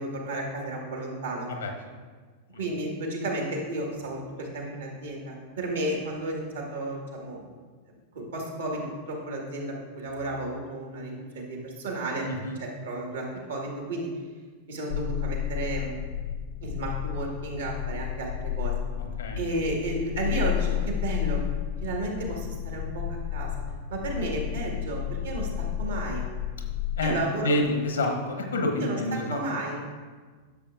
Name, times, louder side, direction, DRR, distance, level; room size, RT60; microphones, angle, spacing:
voice 1, 0.0-1.5 2.5-7.6 8.1-12.3 12.6-14.1 14.7-15.9 16.6-18.7 19.4-21.4 21.8-23.5 23.9-26.3 27.0-27.5 28.8-29.8, right 1 dB, 65° right, 0 dB, 1.7 m, -32 dB
voice 2, 12.2-12.6 19.0-19.5 27.0-29.4 29.7-29.8, left 2 dB, 70° left, 4 dB, 1.1 m, -28 dB
sound 1, 14.9-27.0, left 10 dB, 50° left, 0.3 m, -32 dB
12.0 x 6.7 x 2.5 m, 1.5 s
figure-of-eight pair, 90°, 0 cm